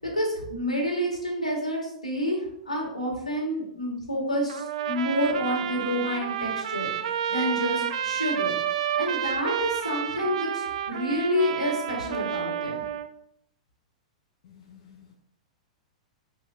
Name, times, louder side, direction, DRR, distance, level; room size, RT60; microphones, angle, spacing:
voice 1, 0.0-8.5 8.9-12.8, equal, 90° left, -2 dB, 2.9 m, -29 dB
Trumpet, 4.5-13.1, right 9 dB, 65° right, 0.5 m, -30 dB
voice 2, 14.4-15.1, left 8 dB, 50° left, 1 dB, 1.0 m, -52 dB
7.7 x 5.5 x 3.7 m, 0.73 s
figure-of-eight pair, 100°, 4 cm